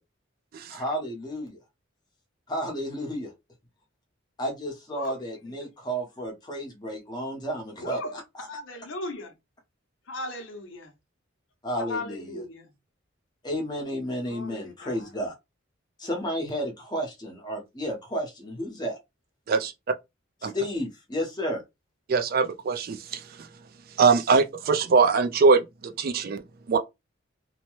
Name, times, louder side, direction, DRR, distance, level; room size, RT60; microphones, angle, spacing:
voice 1, 0.7-1.6 2.5-3.3 4.4-8.0 8.4-8.5 11.6-12.4 13.4-15.3 16.0-19.0 20.4-21.6, equal, 20° left, 0.9 m, -32 dB
voice 2, 7.8-8.2 8.5-9.3 10.1-10.9 11.8-12.7 14.3-15.1, left 2 dB, 65° left, 0.7 m, -37 dB
voice 3, 22.1-23.2 24.0-26.4 26.7-26.8, right 4 dB, 45° right, 0.3 m, -22 dB
2.8 x 2.1 x 3.0 m
head